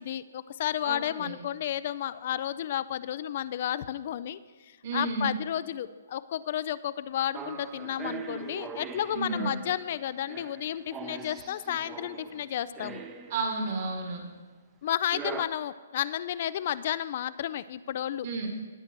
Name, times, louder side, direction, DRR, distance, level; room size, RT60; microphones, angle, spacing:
voice 1, 0.0-13.0 14.8-18.3, left 11 dB, 50° left, 16 dB, 0.4 m, -32 dB
voice 2, 0.8-1.4 4.8-5.3 9.1-9.5 13.3-14.2 18.2-18.5, right 3 dB, 50° right, 1 dB, 2.0 m, -32 dB
sound 1, 7.3-13.7 15.1-15.4, right 5 dB, 20° right, 0.7 m, -41 dB
18.5 x 7.8 x 3.0 m, 1.4 s
hypercardioid pair, 145°, 0 cm